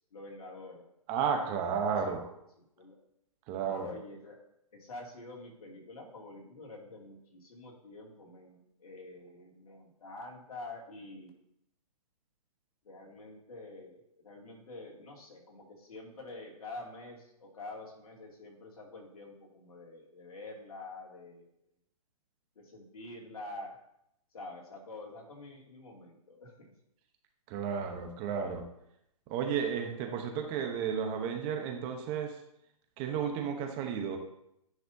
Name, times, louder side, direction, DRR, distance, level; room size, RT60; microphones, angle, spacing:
voice 1, 0.1-0.9 1.9-2.2 2.8-3.0 3.7-4.4 4.7-11.3 12.8-21.5 22.6-23.8 24.3-26.7, left 2 dB, 70° left, -1 dB, 2.5 m, -47 dB
voice 2, 1.1-2.3 3.5-3.9 27.5-28.6 29.3-32.4 33.0-34.2, right 7 dB, 25° right, 4 dB, 0.9 m, -33 dB
9.8 x 5.8 x 2.7 m, 0.78 s
hypercardioid pair, 140°, 19 cm